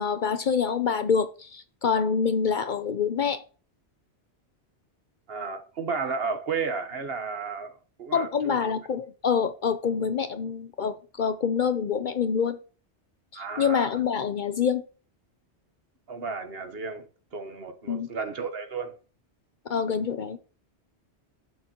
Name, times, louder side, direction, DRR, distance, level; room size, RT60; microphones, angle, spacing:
voice 1, 0.0-3.4 8.1-12.6 13.3-14.8 17.9-18.1 19.7-20.4, left 6 dB, 55° left, 0.7 m, -26 dB
voice 2, 5.3-8.6 13.3-14.0 16.1-19.0, right 5 dB, 65° right, 1.3 m, -33 dB
12.0 x 6.8 x 2.9 m
omnidirectional pair, 1.1 m